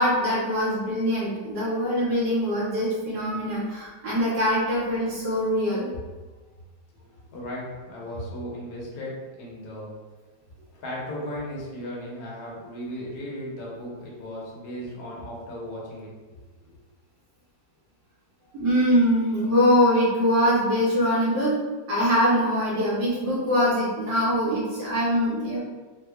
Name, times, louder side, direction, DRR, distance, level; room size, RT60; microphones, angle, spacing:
voice 1, 0.0-5.9 18.5-21.5 21.9-25.6, equal, 75° right, -7 dB, 1.3 m, -23 dB
voice 2, 7.3-9.9 10.7-16.1, equal, 65° left, -4 dB, 1.3 m, -36 dB
3.6 x 2.0 x 3.3 m, 1.3 s
omnidirectional pair, 1.9 m